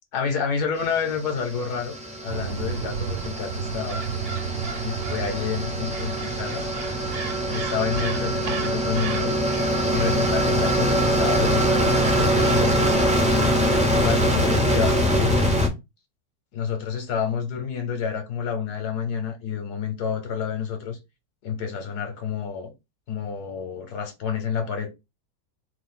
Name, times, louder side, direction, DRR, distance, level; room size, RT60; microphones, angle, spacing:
voice 1, 0.1-2.0 2.2-4.0 4.8-6.7 7.5-9.4 9.9-12.9 13.9-15.4 16.5-21.0 21.4-22.7 23.1-24.9, left 6 dB, 70° left, 1.3 m, -29 dB
sound 1, 1.0-15.7, equal, 10° right, 0.4 m, -23 dB
sound 2, 2.3-13.3, right 6 dB, 70° right, 1.2 m, -33 dB
3.1 x 2.4 x 3.6 m
omnidirectional pair, 1.8 m